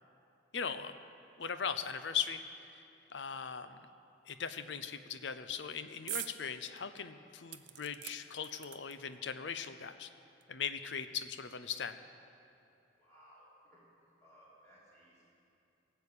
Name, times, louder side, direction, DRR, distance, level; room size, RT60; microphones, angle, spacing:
voice 1, 0.5-1.0 1.4-2.4 2.7-2.8 3.1-3.8 4.3-10.1 10.5-12.0, left 7 dB, 75° left, 11 dB, 0.7 m, -39 dB
sound 1, 6.1-6.4 6.8-6.9 7.5-9.2 10.0-10.1 10.4-10.5, right 14 dB, 75° right, 0.6 m, -43 dB
voice 2, 13.0-13.8 14.2-15.3, equal, 15° left, -9 dB, 3.4 m, -61 dB
18.0 x 7.0 x 8.4 m, 2.7 s
head